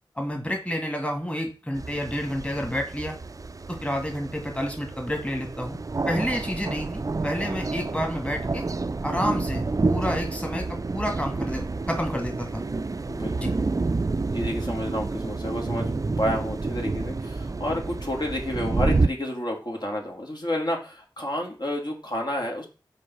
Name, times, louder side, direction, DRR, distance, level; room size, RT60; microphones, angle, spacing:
voice 1, 0.2-3.2 3.7-5.8 6.1-8.6 9.0-12.8 13.4-13.5, equal, 15° left, 2 dB, 1.8 m, -30 dB
sound 1, 1.7-19.1, right 3 dB, 40° right, 0.4 m, -29 dB
voice 2, 13.1-13.5 14.3-22.7, left 1 dB, 55° left, 0 dB, 2.1 m, -30 dB
5.3 x 4.3 x 5.3 m, 0.34 s
cardioid pair, 40°, 9 cm